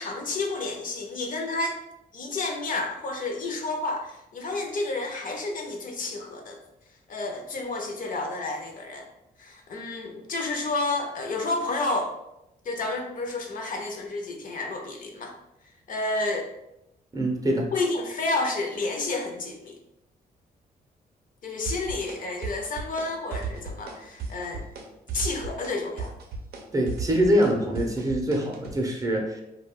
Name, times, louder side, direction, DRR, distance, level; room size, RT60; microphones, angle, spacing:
voice 1, 0.0-1.8 2.1-6.6 7.1-9.1 9.4-12.1 12.6-15.3 15.9-16.5 17.7-19.8 21.4-24.6 25.1-26.1, left 2 dB, 55° left, 3 dB, 0.5 m, -30 dB
voice 2, 17.1-17.7 26.7-29.4, equal, 20° right, 1 dB, 0.6 m, -24 dB
sound 1, 21.6-22.2 22.4-23.1 23.3-23.9 24.2-24.8 25.1-28.8, right 4 dB, 80° right, 0.5 m, -35 dB
2.3 x 2.2 x 3.5 m, 0.87 s
cardioid pair, 100°, 16 cm